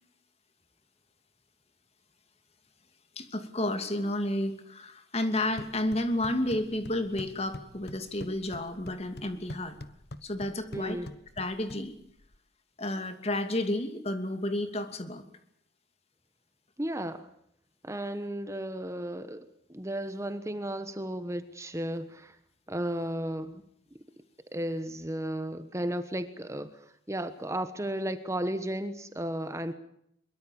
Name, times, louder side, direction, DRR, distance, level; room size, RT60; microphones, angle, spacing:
voice 1, 3.2-9.8 10.2-11.0 11.4-11.9 12.8-15.2, left 1 dB, 35° left, 8 dB, 2.7 m, -31 dB
sound 1, 5.4-12.4, left 1 dB, 65° left, 1.3 m, -46 dB
voice 2, 10.7-11.1 16.8-17.3 17.8-22.4 22.7-23.6 24.5-29.7, right 1 dB, 15° right, 10 dB, 1.2 m, -34 dB
23.0 x 22.5 x 7.1 m, 0.72 s
head